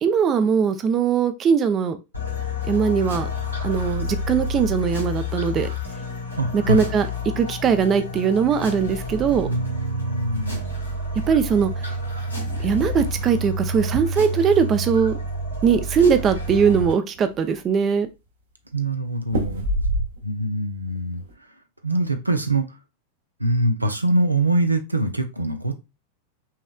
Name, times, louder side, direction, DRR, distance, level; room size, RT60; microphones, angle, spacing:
voice 1, 0.0-2.0 2.7-3.3 3.6-5.7 6.5-7.1 7.4-9.5 11.3-11.9 12.6-15.2 15.6-18.1, right 6 dB, 30° right, 0.5 m, -20 dB
sound 1, 2.1-16.9, left 1 dB, 90° left, 2.2 m, -29 dB
voice 2, 6.4-6.8 9.4-10.7 18.7-19.7 20.2-21.2 21.8-22.8 23.4-25.8, right 1 dB, 85° right, 0.6 m, -23 dB
sound 2, 15.4-16.3 16.8-16.9 17.1-17.8 19.3-20.5 20.9-21.3, right 1 dB, 65° right, 1.2 m, -27 dB
5.6 x 3.2 x 2.3 m
figure-of-eight pair, 90°, 0 cm